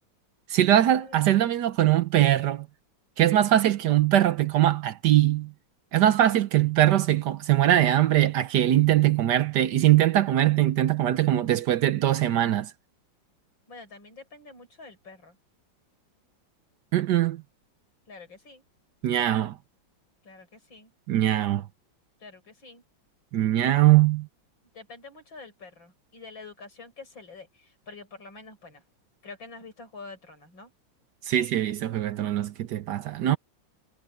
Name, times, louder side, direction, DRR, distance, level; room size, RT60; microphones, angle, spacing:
voice 1, 0.5-2.7 3.2-5.5 5.9-12.7 16.9-17.4 19.0-19.6 21.1-21.7 23.3-24.3 31.3-33.4, right 12 dB, 65° right, 1.2 m, -22 dB
voice 2, 13.7-15.4 18.1-18.6 20.2-20.9 22.2-22.8 24.7-28.8 29.2-30.7, left 3 dB, 75° left, 7.5 m, -46 dB
omnidirectional pair, 2.1 m